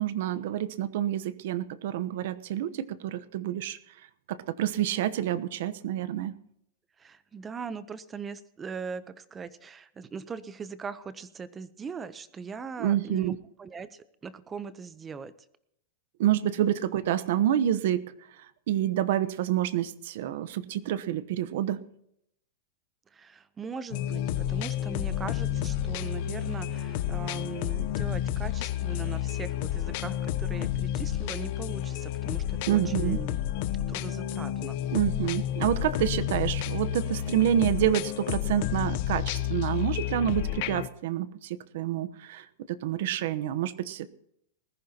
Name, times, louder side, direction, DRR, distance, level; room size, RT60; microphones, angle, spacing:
voice 1, 0.0-3.8 4.3-6.3 12.8-13.4 16.2-18.1 18.7-21.8 32.7-33.2 34.9-44.1, right 11 dB, 60° right, 14 dB, 0.9 m, -28 dB
voice 2, 7.0-15.3 23.1-33.4 33.9-34.8, right 5 dB, 15° right, 15 dB, 0.8 m, -40 dB
sound 1, 23.9-40.9, left 12 dB, 45° left, 0.8 m, -30 dB
20.5 x 14.5 x 2.9 m, 0.74 s
supercardioid pair, 155°, 0 cm